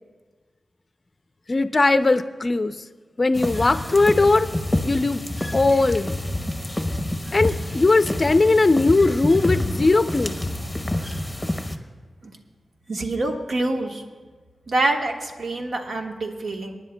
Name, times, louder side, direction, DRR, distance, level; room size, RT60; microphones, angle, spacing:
voice 1, 1.5-2.8 3.2-4.5 4.8-5.2 5.5-6.1 7.3-10.3, left 3 dB, 35° left, 10 dB, 0.5 m, -19 dB
sound 1, 3.3-11.7, left 1 dB, 10° left, 0.9 m, -28 dB
voice 2, 12.9-14.0 14.7-16.8, right 2 dB, 70° right, 2 dB, 1.3 m, -26 dB
27.5 x 10.0 x 2.2 m, 1.4 s
wide cardioid pair, 100°, 0 cm